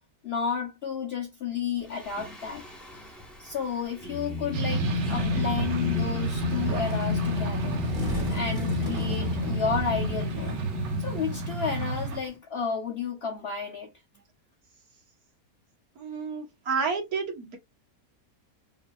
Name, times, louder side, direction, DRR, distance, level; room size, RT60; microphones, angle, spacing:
voice 1, 0.2-2.6 3.4-7.8 8.3-10.6 11.0-13.9, left 6 dB, 50° left, 0.9 m, -32 dB
Singing, 1.9-12.3, left 4 dB, ahead, 1.1 m, -32 dB
sound 1, 4.5-12.2, right 4 dB, 60° right, 0.9 m, -31 dB
sound 2, 4.8-10.1, right 2 dB, 40° right, 2.2 m, -40 dB
voice 2, 16.0-17.6, right 5 dB, 80° right, 1.7 m, -30 dB
4.9 x 2.7 x 2.3 m
omnidirectional pair, 1.5 m